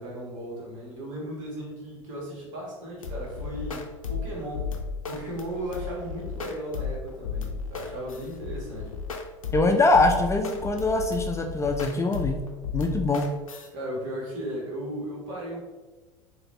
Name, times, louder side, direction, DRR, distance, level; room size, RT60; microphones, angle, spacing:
voice 1, 0.0-4.7 5.0-8.9 13.7-15.6, right 1 dB, 70° right, -3 dB, 1.4 m, -36 dB
sound 1, 3.0-13.7, left 5 dB, 90° left, 0.4 m, -34 dB
voice 2, 9.5-12.4 12.7-13.3, left 2 dB, 15° left, 4 dB, 0.4 m, -23 dB
4.0 x 2.6 x 3.1 m, 1.3 s
hypercardioid pair, 80°, 17 cm